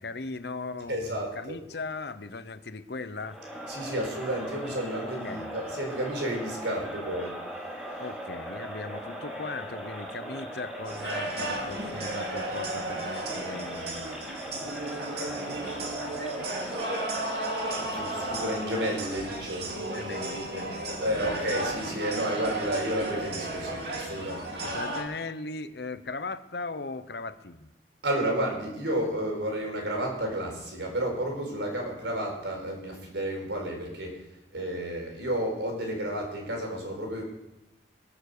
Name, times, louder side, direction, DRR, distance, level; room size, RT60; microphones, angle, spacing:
voice 1, 0.0-3.6 5.0-5.5 8.0-14.2 15.2-16.2 19.7-21.7 24.2-27.7 31.8-32.0, left 3 dB, 65° left, 11 dB, 0.9 m, -39 dB
voice 2, 0.9-1.5 3.7-7.4 17.9-19.7 20.1-20.2 21.0-24.6 28.0-34.2 34.5-37.2, right 1 dB, 90° right, 1 dB, 4.7 m, -31 dB
Crowd, 3.2-19.5, equal, 5° right, 4.7 m, -39 dB
sound 1, 10.8-25.0, right 2 dB, 65° right, 2.5 m, -34 dB
21.5 x 7.1 x 6.7 m, 0.96 s
head